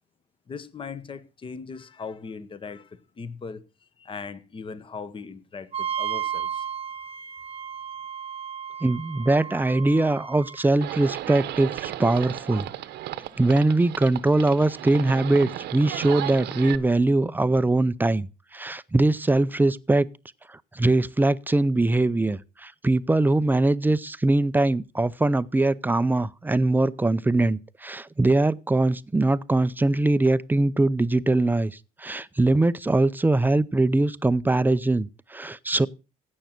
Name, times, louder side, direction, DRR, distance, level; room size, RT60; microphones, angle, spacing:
voice 1, 0.5-6.7, left 5 dB, 30° left, 1.2 m, -39 dB
Wind instrument woodwind instrument, 5.7-10.7, right 9 dB, 35° right, 1.0 m, -34 dB
voice 2, 8.8-12.7 13.4-20.1 20.5-35.9, right 2 dB, 10° right, 0.6 m, -22 dB
Livestock farm animals working animals, 10.8-16.8, right 13 dB, 80° right, 1.1 m, -34 dB
16.0 x 6.4 x 5.9 m
cardioid pair, 110°, 17 cm